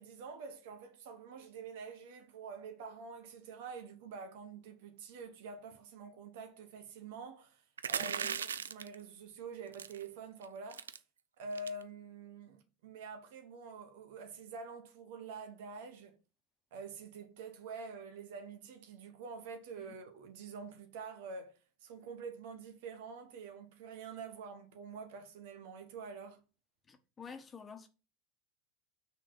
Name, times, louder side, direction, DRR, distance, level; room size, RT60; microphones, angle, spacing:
voice 1, 0.0-11.0 11.4-16.2 16.7-26.4, right 4 dB, 65° right, 1.4 m, -47 dB
sound 1, 7.8-8.9 9.7-10.0 10.4-10.5 10.7-11.0 11.5-11.8, right 7 dB, 80° right, 0.4 m, -37 dB
voice 2, 8.0-8.4 19.8-19.9 26.9-27.9, left 6 dB, 25° left, 1.3 m, -50 dB
6.2 x 4.3 x 6.1 m
figure-of-eight pair, 80°, 0 cm